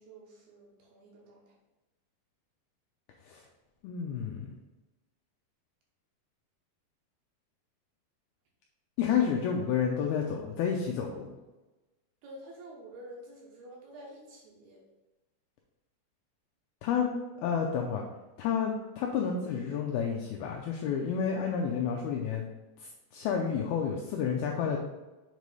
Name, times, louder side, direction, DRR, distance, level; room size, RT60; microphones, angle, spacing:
voice 1, 0.0-1.5 12.2-14.8, right 1 dB, 75° right, -1 dB, 2.5 m, -49 dB
voice 2, 3.8-4.5 9.0-11.3 16.8-17.1 17.4-18.0 18.4-22.4 22.8-24.8, left 7 dB, 85° left, 1 dB, 2.2 m, -30 dB
7.4 x 3.2 x 5.3 m, 1.1 s
omnidirectional pair, 5.1 m